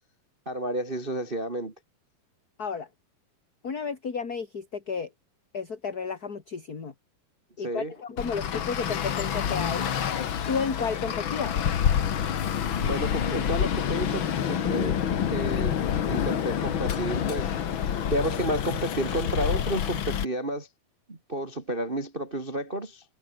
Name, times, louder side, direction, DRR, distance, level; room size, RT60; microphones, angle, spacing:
voice 1, 0.4-1.7 7.6-7.9 12.8-15.0 15.3-15.8 16.1-17.5 18.1-20.7 21.1-23.0, right 1 dB, 20° right, 1.7 m, -31 dB
voice 2, 3.6-5.1 5.5-6.9 7.6-9.9 10.5-11.5, left 5 dB, 30° left, 2.6 m, -32 dB
Traffic noise roadway noise, 8.2-20.3, left 9 dB, 50° left, 1.6 m, -27 dB
omnidirectional pair, 3.9 m